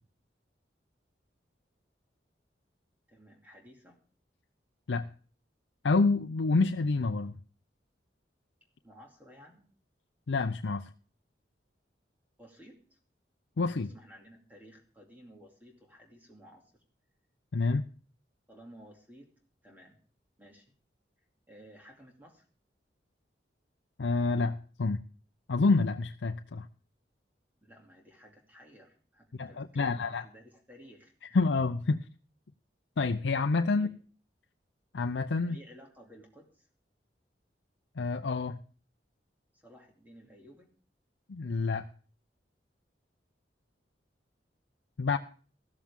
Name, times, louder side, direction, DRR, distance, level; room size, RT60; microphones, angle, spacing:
voice 1, 3.1-4.0 8.8-9.7 12.4-13.0 13.8-16.8 18.5-19.3 19.6-20.0 20.4-20.7 21.5-22.5 27.6-31.4 33.7-33.9 35.4-36.7 39.5-40.7, equal, 10° right, 0 dB, 2.5 m, -55 dB
voice 2, 5.8-7.4 10.3-10.9 13.6-13.9 17.5-17.8 24.0-25.0 25.5-26.7 29.3-30.2 31.3-32.0 33.0-33.9 34.9-35.6 38.0-38.6 41.3-41.9 45.0-45.2, left 3 dB, 90° left, 6 dB, 0.6 m, -28 dB
14.5 x 13.5 x 3.6 m, 0.41 s
head